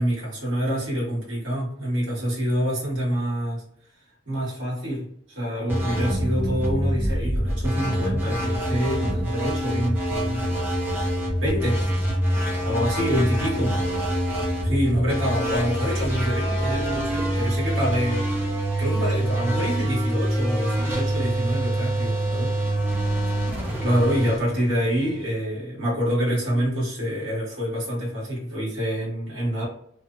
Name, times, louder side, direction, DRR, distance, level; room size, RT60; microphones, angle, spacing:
voice 1, 0.0-3.6 4.3-10.4 11.4-11.8 12.6-13.8 14.6-18.5 18.8-22.5 23.8-29.7, equal, 75° right, -6 dB, 1.4 m, -26 dB
sound 1, 5.7-25.2, right 1 dB, 10° right, 0.5 m, -25 dB
2.9 x 2.0 x 2.4 m, 0.68 s
head